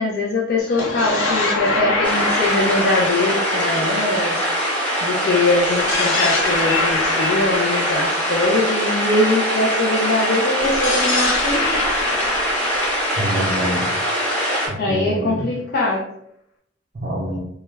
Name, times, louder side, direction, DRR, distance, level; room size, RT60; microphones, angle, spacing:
voice 1, 0.0-4.4 5.0-11.8 14.8-16.0, left 2 dB, 50° left, -3 dB, 0.4 m, -22 dB
sound 1, 0.6-5.0 5.6-9.6 10.6-14.4, left 3 dB, 90° left, 0.7 m, -25 dB
sound 2, 2.0-14.7, equal, 10° left, 0.7 m, -22 dB
voice 2, 13.1-13.9 14.7-15.5 16.9-17.4, equal, 45° right, -5 dB, 0.4 m, -26 dB
2.3 x 2.1 x 3.1 m, 0.75 s
head